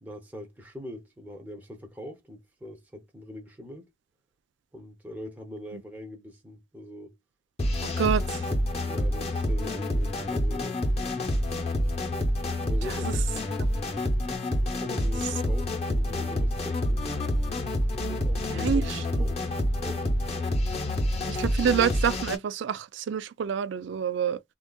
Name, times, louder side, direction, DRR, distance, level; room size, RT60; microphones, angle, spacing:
voice 1, 0.0-3.9 4.7-7.2 8.8-10.8 12.6-13.4 14.6-17.1 18.1-18.9 19.2-19.4 19.8-20.1, left 1 dB, 10° right, 0.6 m, -42 dB
sound 1, 7.6-22.4, left 1 dB, 30° left, 0.8 m, -27 dB
voice 2, 8.0-8.5 12.8-13.1 14.0-14.1 18.5-19.2 21.3-24.4, right 7 dB, 60° right, 0.3 m, -28 dB
3.5 x 2.4 x 2.2 m
head